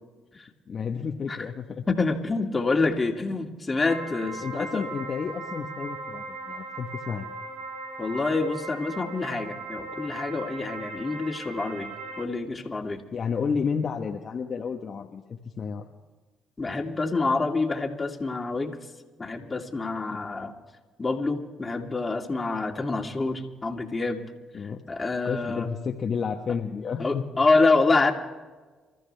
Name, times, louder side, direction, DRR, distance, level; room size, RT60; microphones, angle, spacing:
voice 1, 0.7-1.8 3.4-3.5 4.4-7.3 13.1-15.2 15.6-15.8 24.5-24.8 25.2-27.4, left 6 dB, 50° left, 2 dB, 1.2 m, -31 dB
voice 2, 1.9-4.8 8.0-11.9 12.2-13.0 16.6-18.8 19.2-20.5 21.0-24.2 24.9-25.7 27.0-28.1, left 3 dB, 25° left, 1 dB, 2.6 m, -26 dB
sound 1, 3.9-12.2, right 3 dB, 80° right, 1.5 m, -38 dB
27.5 x 14.0 x 3.5 m, 1.3 s
supercardioid pair, 65°, 0 cm